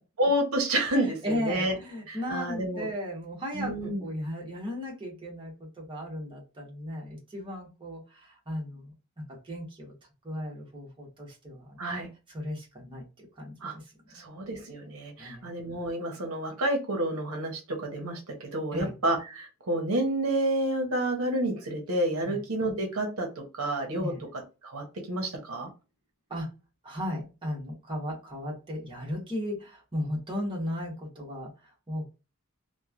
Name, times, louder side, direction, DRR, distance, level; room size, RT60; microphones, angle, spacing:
voice 1, 0.2-1.7 2.1-2.9 3.5-4.0 11.8-12.1 13.6-13.7 14.1-23.3 23.5-25.7, right 1 dB, 70° right, 2 dB, 0.8 m, -29 dB
voice 2, 1.2-8.9 9.3-9.9 10.2-11.8 12.3-13.5 14.1-14.3 15.2-15.5 18.7-19.0 22.3-22.4 24.0-24.3 26.3-26.5 26.8-31.5 31.9-32.0, equal, 25° right, -3 dB, 1.1 m, -36 dB
3.1 x 2.2 x 2.4 m, 0.30 s
head